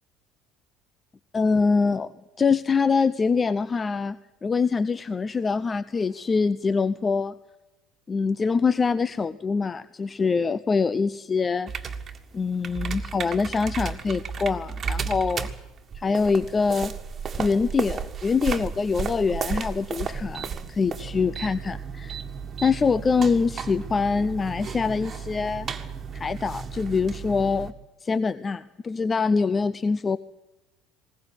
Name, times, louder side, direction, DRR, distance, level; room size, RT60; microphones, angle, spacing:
voice 1, 1.3-2.1 2.4-4.2 4.4-7.3 8.1-11.9 12.3-15.5 15.9-16.9 17.4-22.2 22.6-25.7 26.1-27.7 28.0-30.2, left 5 dB, 25° left, 17 dB, 0.6 m, -24 dB
sound 1, 11.7-27.7, right 6 dB, 35° right, 1.8 m, -34 dB
21.0 x 19.0 x 8.0 m, 1.0 s
figure-of-eight pair, 60°, 0 cm